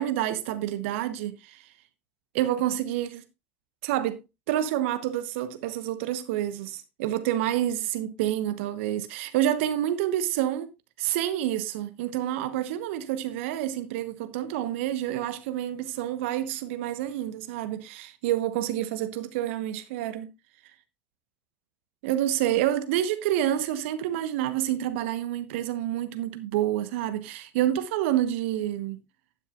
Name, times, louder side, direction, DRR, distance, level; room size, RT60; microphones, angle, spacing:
voice 1, 0.0-1.7 2.3-3.2 3.8-4.2 4.5-10.7 11.0-20.3 22.0-29.0, right 12 dB, 65° right, 1.1 m, -28 dB
11.5 x 9.8 x 2.5 m
figure-of-eight pair, 70°, 7 cm